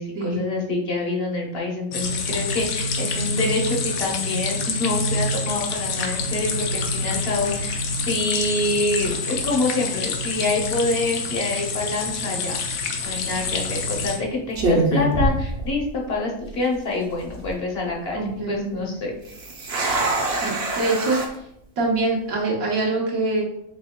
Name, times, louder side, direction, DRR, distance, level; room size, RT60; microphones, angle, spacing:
voice 1, 0.0-7.8 8.1-12.6 13.0-18.2 18.5-19.2, left 2 dB, 55° left, -1 dB, 0.9 m, -26 dB
sound 1, 1.9-14.2, left 3 dB, 85° left, 1.1 m, -27 dB
sound 2, 13.0-13.3 14.0-14.2 14.5-16.1 16.4-16.5 17.1-17.5 19.2-21.3, right 1 dB, 50° right, 0.9 m, -24 dB
voice 2, 18.1-18.8 20.3-21.2 21.8-23.4, right 2 dB, 85° right, -3 dB, 1.6 m, -24 dB
4.9 x 3.5 x 2.2 m, 0.77 s
omnidirectional pair, 1.4 m